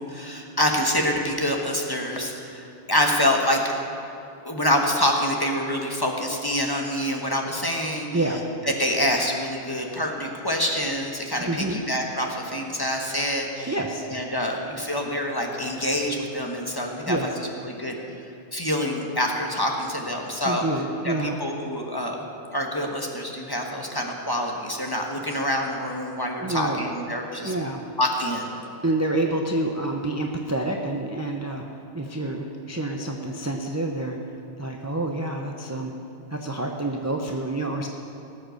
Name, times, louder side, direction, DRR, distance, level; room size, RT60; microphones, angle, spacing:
voice 1, 0.0-3.6 4.4-8.2 8.8-13.8 14.1-17.9 18.5-20.6 21.0-22.2 22.5-27.5 28.0-28.5, left 1 dB, 20° left, 1 dB, 1.3 m, -26 dB
voice 2, 11.5-11.8 13.7-14.0 17.1-17.3 20.4-21.4 26.4-26.8 27.4-27.8 28.8-31.7 31.9-34.2 34.6-35.9 36.3-37.9, right 2 dB, 15° right, 1 dB, 0.7 m, -27 dB
18.5 x 7.9 x 6.4 m, 2.7 s
omnidirectional pair, 1.1 m